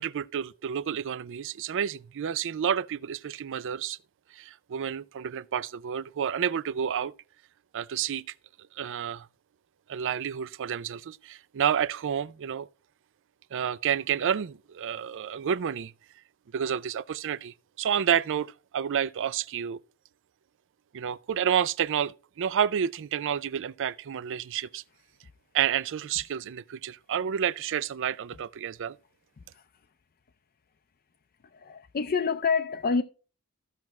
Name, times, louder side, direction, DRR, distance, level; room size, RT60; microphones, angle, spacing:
voice 1, 0.0-4.0 4.3-7.1 7.7-8.2 8.8-9.3 9.9-12.7 13.5-15.9 16.5-19.8 20.9-24.8 25.5-29.0, right 8 dB, 60° right, 0.4 m, -30 dB
voice 2, 31.5-33.0, left 5 dB, 45° left, 0.5 m, -27 dB
15.0 x 5.9 x 3.1 m
head